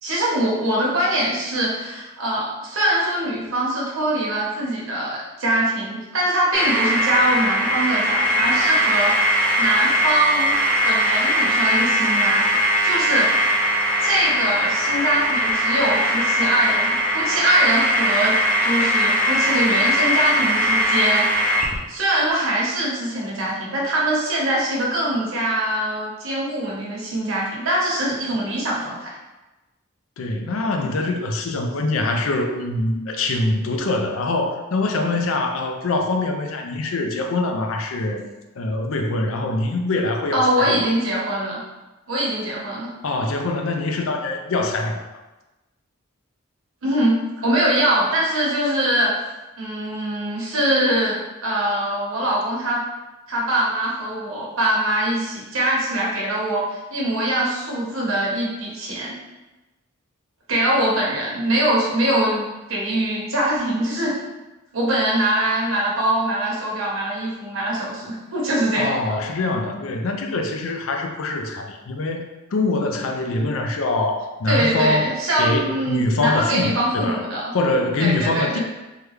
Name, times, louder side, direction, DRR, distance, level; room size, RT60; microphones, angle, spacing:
voice 1, 0.0-10.5 10.8-12.5 12.8-13.3 14.0-29.2 40.3-41.6 42.1-42.9 46.8-49.1 49.6-51.1 51.4-52.8 53.3-59.1 60.5-64.2 64.7-69.2 74.5-77.5 78.0-78.6, right 1 dB, 80° right, -4 dB, 1.0 m, -23 dB
sound 1, 6.5-21.7, equal, 5° left, 0.4 m, -20 dB
voice 2, 30.2-38.2 38.6-40.8 43.0-45.0 68.8-77.2 77.5-78.6, left 2 dB, 75° left, 4 dB, 0.4 m, -24 dB
3.6 x 2.2 x 3.1 m, 1.1 s
head